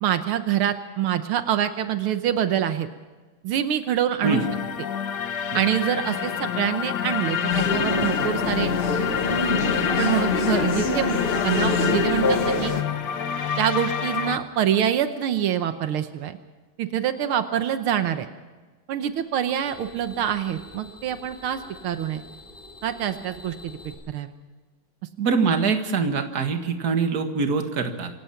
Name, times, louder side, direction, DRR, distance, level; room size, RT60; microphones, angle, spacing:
voice 1, 0.0-2.9 3.4-4.4 5.5-8.7 10.0-11.2 11.4-12.7 13.6-16.4 16.8-18.3 18.9-22.2 22.8-23.8 24.1-24.3, right 10 dB, 85° right, 9 dB, 1.8 m, -25 dB
sound 1, 4.2-14.4, left 8 dB, 60° left, 1.6 m, -27 dB
sound 2, 7.5-12.8, left 3 dB, 30° left, 1.5 m, -25 dB
sound 3, 19.1-23.9, left 2 dB, ahead, 5.8 m, -46 dB
voice 2, 25.2-28.1, right 5 dB, 50° right, 6 dB, 2.2 m, -24 dB
26.5 x 17.0 x 5.8 m, 1.3 s
omnidirectional pair, 2.3 m